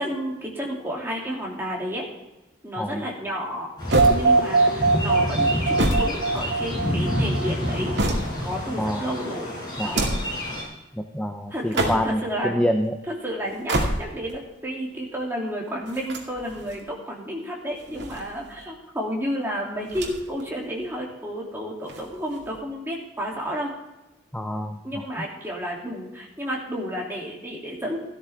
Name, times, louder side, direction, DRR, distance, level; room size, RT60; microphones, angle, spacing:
voice 1, 0.0-2.1 2.6-3.7 4.1-8.0 8.4-9.6 9.8-10.0 11.5-12.6 13.1-23.7 24.8-28.0, equal, 10° right, -3 dB, 2.9 m, -31 dB
sound 1, 3.8-10.6, left 1 dB, 20° left, 5.6 m, -29 dB
sound 2, 3.9-4.7 5.5-6.9 7.5-8.6 9.7-10.4 11.5-12.3 13.5-14.3 15.9-16.8 17.7-18.6 19.8-20.4 20.7-20.8 21.8-22.6, right 1 dB, 60° right, 2.3 m, -28 dB
sound 3, 3.9-7.9, right 3 dB, 85° right, 0.7 m, -21 dB
voice 2, 8.8-9.1 9.8-10.1 10.9-12.9 24.3-25.0, equal, 5° left, 5 dB, 0.6 m, -27 dB
14.5 x 12.5 x 3.6 m, 0.99 s
head